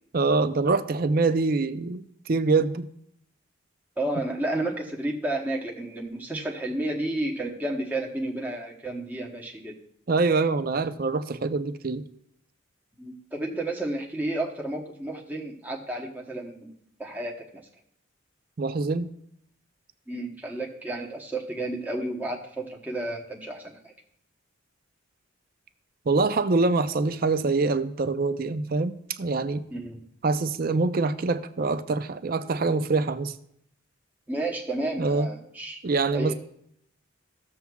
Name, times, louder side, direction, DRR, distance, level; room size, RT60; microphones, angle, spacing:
voice 1, 0.1-2.9 10.1-12.0 18.6-19.1 26.1-29.6 30.2-33.3 35.0-35.3 35.8-36.3, right 3 dB, 45° right, 11 dB, 0.5 m, -25 dB
voice 2, 4.0-9.8 13.0-16.7 17.0-17.6 20.1-23.9 29.7-30.0 34.3-35.8 36.1-36.3, right 1 dB, 10° right, -1 dB, 0.9 m, -31 dB
15.5 x 7.0 x 2.3 m, 0.71 s
head